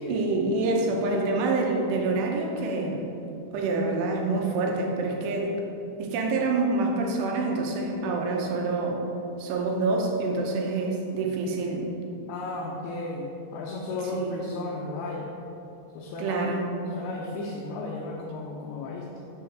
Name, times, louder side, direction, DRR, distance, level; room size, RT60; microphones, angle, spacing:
voice 1, 0.0-3.1 3.5-5.5 6.0-9.0 9.4-11.9 14.1-14.5 16.2-16.7, right 3 dB, 80° right, 0 dB, 2.9 m, -27 dB
voice 2, 12.3-15.3 15.9-16.5 17.0-19.1, left 2 dB, 85° left, -2 dB, 2.1 m, -34 dB
6.3 x 3.8 x 5.7 m, 2.8 s
omnidirectional pair, 4.9 m